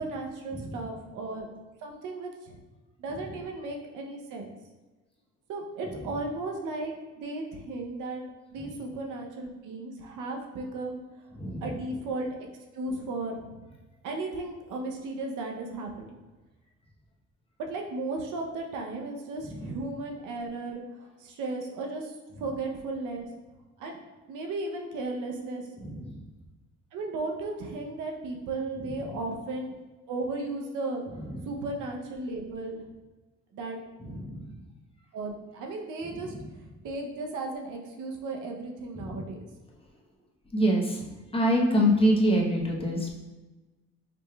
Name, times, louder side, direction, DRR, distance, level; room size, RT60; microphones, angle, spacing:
voice 1, 0.0-1.5 1.8-2.6 3.0-4.5 5.5-8.2 8.5-11.0 11.6-12.5 12.7-13.6 14.0-16.1 17.6-23.3 23.8-24.0 24.3-25.6 26.9-29.8 30.1-31.0 31.4-32.9 33.5-33.8 35.1-36.3 36.8-39.5, right 2 dB, 85° right, 2 dB, 0.7 m, -35 dB
voice 2, 40.5-41.0 41.3-43.1, equal, 20° left, -2 dB, 0.9 m, -24 dB
5.1 x 3.1 x 2.2 m, 1.2 s
cardioid pair, 90°, 30 cm